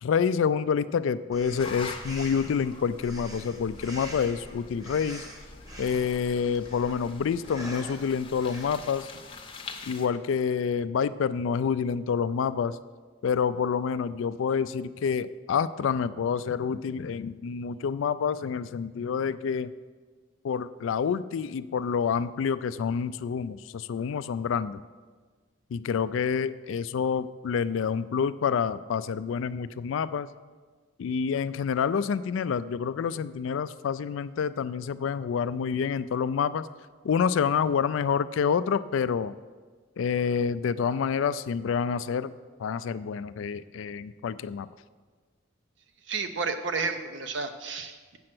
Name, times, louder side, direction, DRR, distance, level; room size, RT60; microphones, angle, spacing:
voice 1, 0.0-5.2 5.8-9.1 9.9-12.8 13.2-19.7 20.4-24.8 25.7-30.3 31.0-36.7 37.0-39.3 40.0-42.3 42.6-44.7, left 6 dB, 75° left, 15 dB, 0.3 m, -28 dB
Breathing, 1.3-8.9, equal, 15° right, 0.9 m, -44 dB
sound 1, 1.6-10.1, left 4 dB, 25° left, 0.7 m, -45 dB
voice 2, 46.1-48.2, right 4 dB, 65° right, 8 dB, 0.7 m, -31 dB
7.7 x 7.6 x 6.0 m, 1.4 s
head